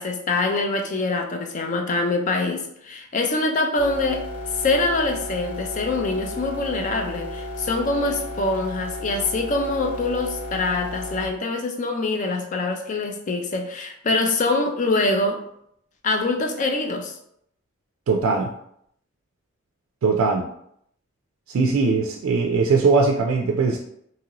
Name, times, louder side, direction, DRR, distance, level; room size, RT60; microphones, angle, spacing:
voice 1, 0.0-4.3 4.6-15.4 16.0-17.2, left 2 dB, 35° left, 4 dB, 0.4 m, -24 dB
sound 1, 3.8-11.3, left 1 dB, 10° right, 0.6 m, -34 dB
voice 2, 18.1-18.5 20.0-20.5 21.5-23.8, right 4 dB, 80° right, 0 dB, 0.3 m, -20 dB
2.8 x 2.6 x 2.9 m, 0.73 s
head